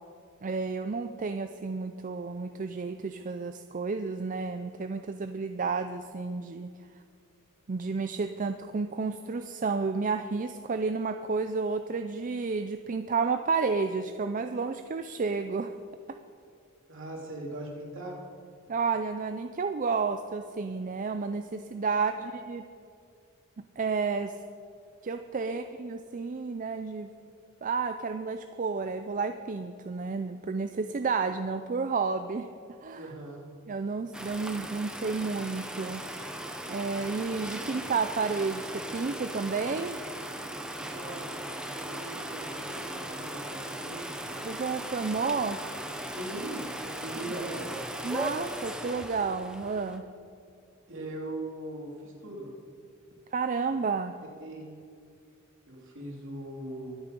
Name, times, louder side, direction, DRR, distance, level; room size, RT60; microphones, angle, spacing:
voice 1, 0.4-6.7 7.7-15.7 18.7-22.6 23.8-24.3 25.0-27.1 27.6-32.5 32.8-33.1 33.7-36.0 36.6-40.0 44.4-45.6 48.0-50.1 53.3-54.1, right 4 dB, 35° right, 8 dB, 0.4 m, -31 dB
voice 2, 16.9-18.2 22.2-22.3 25.4-25.5 32.9-33.4 40.9-41.3 41.6-44.3 46.2-46.7 47.0-47.6 50.9-52.5 54.4-54.8 55.7-57.0, right 1 dB, 60° right, -2 dB, 3.1 m, -40 dB
sound 1, 34.1-50.0, right 1 dB, 5° right, 0.9 m, -38 dB
23.5 x 8.1 x 5.3 m, 2.3 s
head